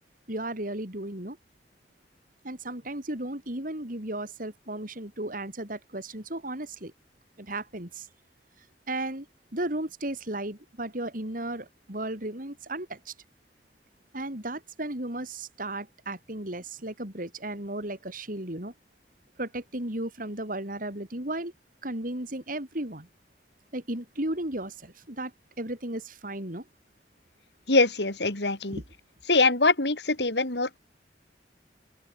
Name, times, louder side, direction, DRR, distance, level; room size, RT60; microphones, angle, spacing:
voice 1, 0.3-1.4 2.4-6.9 7.4-8.1 8.9-9.3 9.5-13.1 14.1-18.7 19.4-21.5 21.8-23.1 23.7-25.3 25.6-26.6 28.7-28.8, right 1 dB, 50° right, 4.5 m, -34 dB
voice 2, 27.7-28.8 29.3-30.8, left 3 dB, 75° left, 4.3 m, -23 dB
head